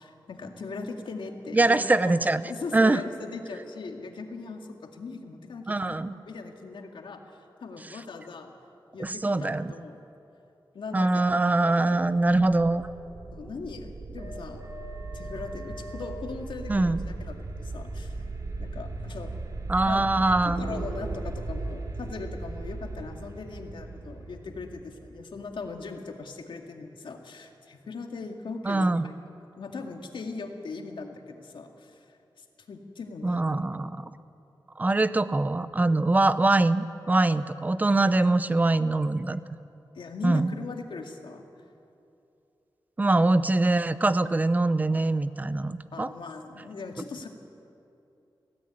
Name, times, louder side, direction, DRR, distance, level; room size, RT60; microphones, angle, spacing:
voice 1, 0.0-1.8 2.0-2.1 2.4-6.0 6.3-7.2 7.6-8.5 8.9-10.0 10.7-11.2 11.6-12.4 13.3-14.7 15.1-18.2 18.6-19.4 19.8-20.0 20.4-29.1 29.6-33.6 38.1-38.3 39.9-41.4 43.2-43.3 45.9-47.3, left 4 dB, 80° left, 3 dB, 2.1 m, -39 dB
voice 2, 1.5-2.4 2.7-3.0 5.7-6.1 9.0-9.7 10.9-12.8 16.7-17.0 19.7-20.8 28.6-29.0 33.2-34.1 34.8-39.4 40.2-40.5 43.0-46.1, right 2 dB, 20° right, 14 dB, 0.6 m, -23 dB
sound 1, 12.1-25.8, right 2 dB, 50° right, 2.7 m, -37 dB
21.5 x 17.0 x 9.7 m, 2.7 s
wide cardioid pair, 170°, 8 cm